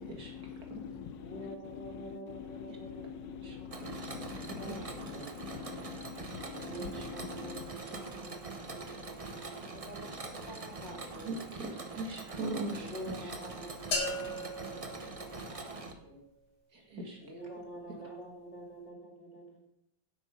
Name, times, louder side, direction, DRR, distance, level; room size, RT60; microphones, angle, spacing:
voice 1, 0.0-7.7, left 7 dB, 75° left, 10 dB, 1.4 m, -44 dB
voice 2, 1.2-3.7 4.6-5.3 6.5-11.3 12.8-16.2 17.2-19.7, right 1 dB, 40° left, -1 dB, 2.9 m, -47 dB
voice 3, 3.4-3.8 6.3-6.4 6.9-7.0 11.2-13.3 16.7-17.2, right 2 dB, 55° right, 1 dB, 2.6 m, -40 dB
Mechanisms, 3.7-15.9, right 3 dB, 30° right, 0.7 m, -44 dB
sound 1, 13.9-15.9, left 1 dB, 55° left, 2.5 m, -37 dB
9.6 x 8.6 x 5.3 m, 0.81 s
omnidirectional pair, 2.0 m